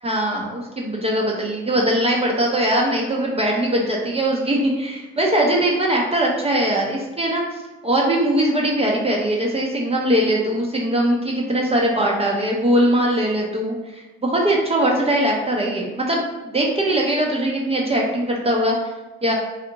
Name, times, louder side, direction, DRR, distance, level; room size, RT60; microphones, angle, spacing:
voice 1, 0.0-18.7 19.2-19.3, right 1 dB, 20° right, -2 dB, 0.6 m, -21 dB
2.6 x 2.4 x 2.8 m, 1.1 s
hypercardioid pair, 55°, 29 cm